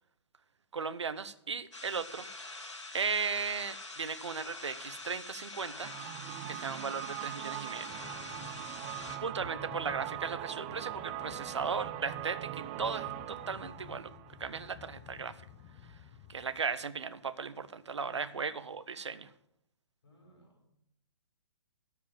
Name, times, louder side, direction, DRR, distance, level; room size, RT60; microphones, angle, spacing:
voice 1, 0.7-2.3 2.9-5.9 6.5-8.2 9.2-14.1 14.4-15.3 16.3-19.3, right 5 dB, 75° right, 13 dB, 0.8 m, -36 dB
sound 1, 1.7-9.2, left 2 dB, 85° left, 1.8 m, -45 dB
sound 2, 5.8-15.5, right 15 dB, 25° right, 0.4 m, -42 dB
Train, 7.9-16.8, left 7 dB, 25° left, 0.9 m, -53 dB
voice 2, 8.8-9.6 11.2-11.7 18.1-18.4 20.0-20.7, equal, 55° left, -2 dB, 4.8 m, -57 dB
13.0 x 4.8 x 7.3 m, 0.78 s
figure-of-eight pair, 130°, 15 cm